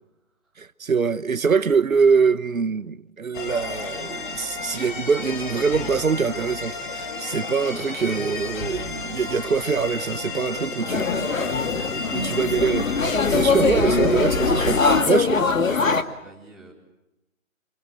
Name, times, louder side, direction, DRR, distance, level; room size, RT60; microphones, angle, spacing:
voice 1, 0.6-11.0 12.1-15.4, right 5 dB, 85° right, 1.1 m, -24 dB
sound 1, 3.3-15.0, left 3 dB, 40° left, 3.5 m, -32 dB
voice 2, 10.4-11.5 11.9-12.3 14.7-16.7, right 3 dB, ahead, 4.4 m, -45 dB
sound 2, 10.9-16.0, left 4 dB, 75° left, 2.1 m, -22 dB
27.5 x 25.0 x 7.6 m
figure-of-eight pair, 155°, 40 cm